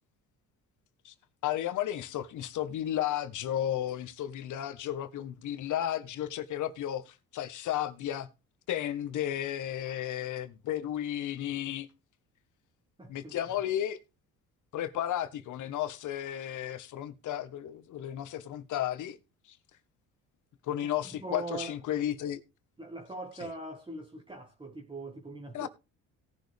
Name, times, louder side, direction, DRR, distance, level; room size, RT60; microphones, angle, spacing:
voice 1, 1.4-8.3 8.7-11.9 13.1-14.0 14.7-19.2 19.5-19.6 20.6-22.4 25.5-25.7, left 11 dB, 65° left, 1.5 m, -33 dB
voice 2, 13.0-13.3 20.8-21.8 22.8-25.7, right 2 dB, 15° right, 1.7 m, -41 dB
17.5 x 6.5 x 3.5 m
cardioid pair, 90°, 32 cm